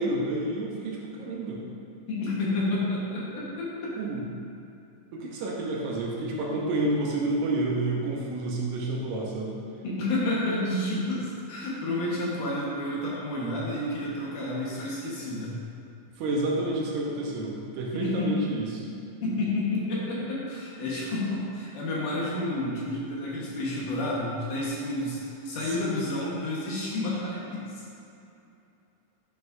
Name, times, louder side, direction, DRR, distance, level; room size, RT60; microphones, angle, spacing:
voice 1, 0.0-1.6 4.0-4.2 5.1-9.5 16.2-18.9 25.6-25.9, right 2 dB, 75° right, -2 dB, 2.3 m, -29 dB
voice 2, 2.1-4.0 9.8-15.5 17.9-18.3 19.2-28.0, left 1 dB, 80° left, -6 dB, 2.9 m, -30 dB
9.7 x 5.5 x 2.6 m, 2.7 s
omnidirectional pair, 3.5 m